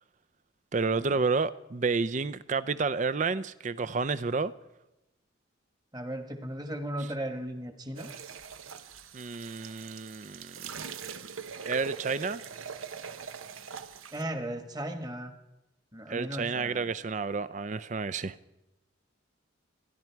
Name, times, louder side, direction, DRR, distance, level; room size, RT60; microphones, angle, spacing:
voice 1, 0.7-4.5 9.1-10.6 11.7-12.4 16.1-18.3, right 4 dB, 35° right, 0.4 m, -30 dB
voice 2, 5.9-8.1 14.1-15.3 15.9-16.9, right 1 dB, 20° right, 1.3 m, -36 dB
sound 1, 8.0-14.2, right 6 dB, 90° right, 0.9 m, -42 dB
27.5 x 11.0 x 4.6 m
head